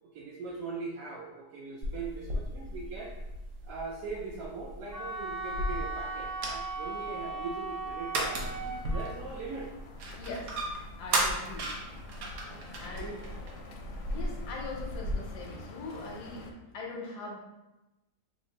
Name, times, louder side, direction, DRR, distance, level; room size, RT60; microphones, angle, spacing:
voice 1, 0.0-3.1 3.6-8.5 8.9-9.7 12.5-13.2, right 4 dB, 70° right, -5 dB, 0.9 m, -40 dB
sound 1, 1.8-15.2, right 1 dB, 90° right, 1.3 m, -36 dB
Wind instrument woodwind instrument, 4.9-9.1, right 3 dB, 20° right, 0.6 m, -37 dB
sound 2, 8.3-16.5, left 2 dB, 70° left, 0.7 m, -48 dB
voice 2, 10.2-10.5 11.0-11.7 12.8-13.2 14.1-17.4, left 3 dB, 90° left, -1 dB, 1.3 m, -41 dB
3.6 x 2.1 x 3.9 m, 1.0 s
omnidirectional pair, 1.7 m